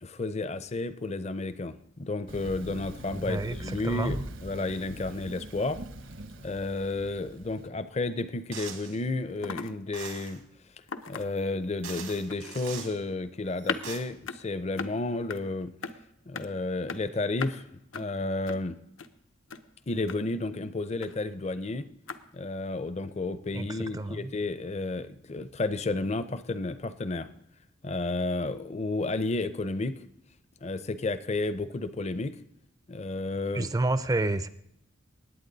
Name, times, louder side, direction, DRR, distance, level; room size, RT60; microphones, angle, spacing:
voice 1, 0.0-5.8 6.4-10.4 11.1-15.7 16.3-17.6 17.9-18.8 19.9-21.9 22.3-27.3 27.8-29.9 30.6-32.4 32.9-33.7, left 2 dB, 35° left, 13 dB, 0.5 m, -32 dB
Thunder, 2.3-7.7, right 1 dB, 75° right, 1.1 m, -43 dB
voice 2, 3.2-4.2 23.5-24.3 33.5-34.5, right 2 dB, 20° right, 13 dB, 0.4 m, -29 dB
sound 1, 8.5-8.6 8.8-8.9 9.3-9.7 10.0-10.2 10.9-11.6 12.3-12.6 13.6-13.8 14.2-14.4 14.8-14.9 15.3-15.4 15.8-15.9 16.3-16.5 16.9-17.0 17.4-17.5 17.9-18.0 18.5-18.6 19.0-19.1 19.5-19.6 20.0-20.2 21.0-21.1 22.1-22.2, left 5 dB, 75° left, 0.8 m, -36 dB
sound 2, 8.5-9.0 9.9-10.4 11.4-11.5 11.8-13.0 13.6-14.0, right 7 dB, 90° right, 2.2 m, -42 dB
19.5 x 8.7 x 4.0 m, 0.78 s
head